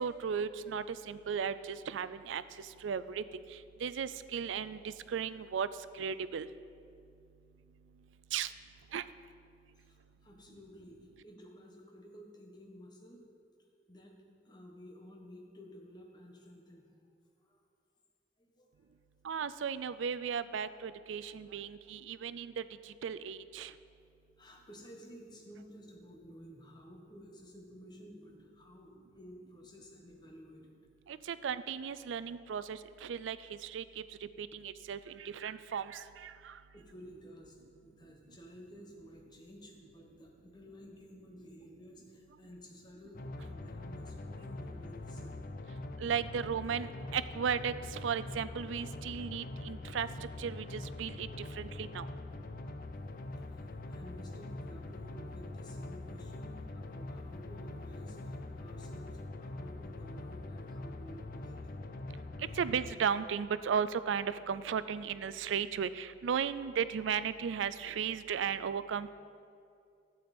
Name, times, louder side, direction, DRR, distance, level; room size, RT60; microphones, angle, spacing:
voice 1, 0.0-2.4 2.8-3.2 3.8-5.7 6.0-6.5 8.3-8.5 8.9-9.0 19.2-22.6 23.0-23.7 31.1-33.4 33.6-34.0 34.4-36.5 46.0-50.1 50.4-51.3 51.6-52.1 62.6-69.2, right 7 dB, 80° right, 15 dB, 0.4 m, -35 dB
voice 2, 9.8-13.2 13.9-16.9 17.4-17.6 18.4-18.7 19.3-19.4 24.4-30.7 36.7-37.6 37.8-45.4 53.5-61.8, equal, 20° left, 0 dB, 1.2 m, -53 dB
sound 1, 43.1-62.9, left 2 dB, 50° left, 0.5 m, -43 dB
11.5 x 8.6 x 4.3 m, 2.5 s
head